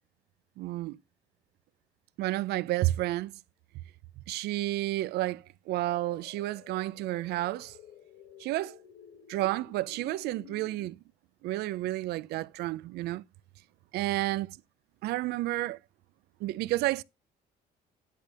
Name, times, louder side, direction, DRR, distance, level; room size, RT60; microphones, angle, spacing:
voice 1, 0.6-1.0 2.2-3.3 4.3-7.8 8.4-8.8 9.3-11.0 11.4-13.2 13.9-14.6 15.0-15.8 16.4-17.0, right 17 dB, 75° right, 0.4 m, -31 dB
sound 1, 5.9-10.9, left 7 dB, 85° left, 1.7 m, -52 dB
10.0 x 3.4 x 6.4 m
cardioid pair, 110°, 17 cm